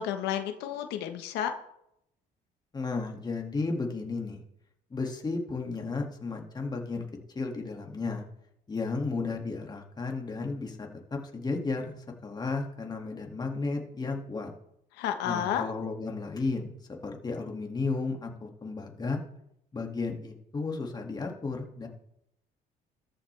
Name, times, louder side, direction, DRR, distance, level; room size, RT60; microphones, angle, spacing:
voice 1, 0.0-1.5 15.0-15.6, left 9 dB, 90° left, 6 dB, 1.1 m, -31 dB
voice 2, 2.7-4.4 4.9-7.1 7.3-8.2 8.7-11.9 12.2-14.5 15.2-16.7 17.0-19.2 19.7-21.9, left 3 dB, 25° left, 2 dB, 2.1 m, -33 dB
13.5 x 11.0 x 3.4 m, 0.77 s
cardioid pair, 110°, 17 cm